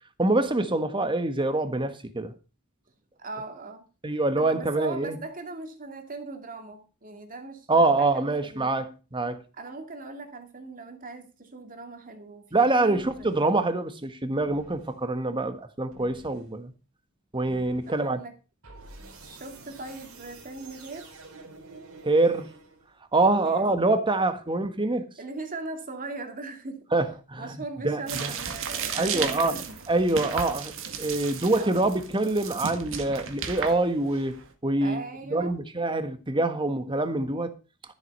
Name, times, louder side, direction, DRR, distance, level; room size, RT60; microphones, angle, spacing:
voice 1, 0.2-2.3 4.0-5.2 7.7-9.4 12.5-16.7 17.3-18.2 22.0-22.5 23.1-25.1 26.9-28.3 29.0-29.5 29.9-30.7 31.0-35.0 35.3-37.5, right 2 dB, 25° right, 1.4 m, -25 dB
voice 2, 3.2-3.9 4.4-8.7 9.6-13.3 17.9-18.3 19.2-21.1 23.4-23.7 25.2-26.8 27.4-29.8 31.6-31.9 34.8-35.6, right 3 dB, 40° right, 2.4 m, -39 dB
sound 1, 12.9-13.5 14.4-15.0 15.9-16.5 17.4-18.0 18.6-23.0, right 3 dB, 90° right, 3.9 m, -48 dB
sound 2, 28.1-34.5, right 7 dB, 65° right, 2.0 m, -35 dB
13.5 x 8.0 x 5.4 m
head